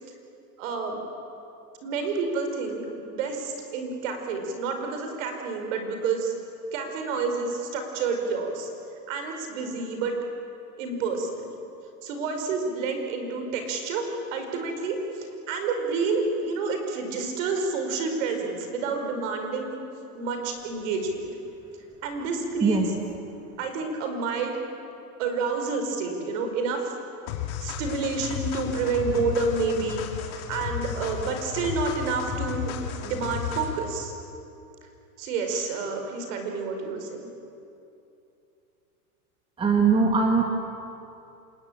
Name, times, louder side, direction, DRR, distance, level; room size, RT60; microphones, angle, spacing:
voice 1, 0.6-1.0 1.8-6.3 6.7-8.7 9.1-10.1 10.8-11.5 12.0-14.0 14.3-19.8 20.2-21.2 22.0-22.8 23.6-24.5 25.2-26.8 27.6-32.7 33.0-34.1 35.2-37.3, right 4 dB, 55° right, 4 dB, 5.3 m, -29 dB
sound 1, 27.3-33.9, left 8 dB, 45° left, 3.0 m, -33 dB
voice 2, 39.6-40.4, right 4 dB, 10° right, 2 dB, 1.9 m, -20 dB
27.0 x 21.0 x 8.9 m, 2.8 s
supercardioid pair, 145°, 45 cm